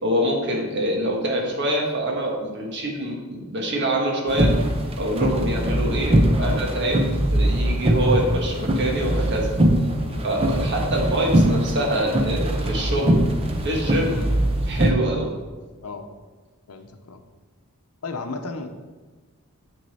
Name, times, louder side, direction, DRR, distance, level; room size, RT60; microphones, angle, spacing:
voice 1, 0.0-4.5 5.0-7.0 7.3-9.5 10.2-13.3 13.6-14.1 14.7-15.3, right 1 dB, 55° right, 0 dB, 1.5 m, -25 dB
sound 1, 4.3-14.9, right 1 dB, 25° right, 0.7 m, -22 dB
voice 2, 10.5-10.9 14.1-14.3 15.8-16.1 16.7-17.2 18.0-18.7, left 4 dB, 90° left, 7 dB, 0.8 m, -34 dB
7.0 x 6.3 x 4.2 m, 1.3 s
head